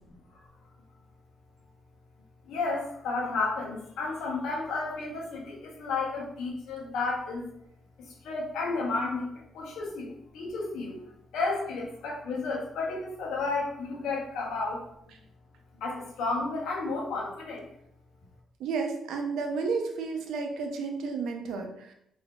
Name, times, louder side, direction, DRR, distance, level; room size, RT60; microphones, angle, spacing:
voice 1, 2.4-7.5 8.0-11.0 11.3-14.8 15.7-17.7, left 3 dB, 80° left, -2 dB, 0.8 m, -32 dB
voice 2, 18.6-21.9, right 4 dB, 80° right, 3 dB, 0.5 m, -32 dB
3.6 x 2.6 x 2.3 m, 0.75 s
cardioid pair, 90°, 0 cm